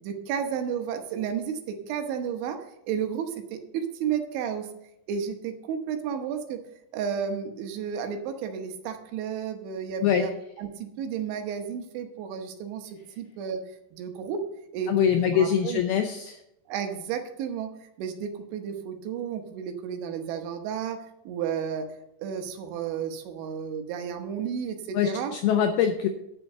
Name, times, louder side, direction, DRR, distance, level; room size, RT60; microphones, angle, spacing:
voice 1, 0.0-4.7 5.1-6.6 6.9-10.3 10.6-14.4 14.7-15.8 16.7-17.7 18.0-21.9 22.2-25.3, right 7 dB, 90° right, 6 dB, 3.5 m, -32 dB
voice 2, 14.9-16.4 25.0-26.1, left 8 dB, 85° left, 6 dB, 2.2 m, -23 dB
10.5 x 5.7 x 6.6 m, 0.81 s
omnidirectional pair, 5.2 m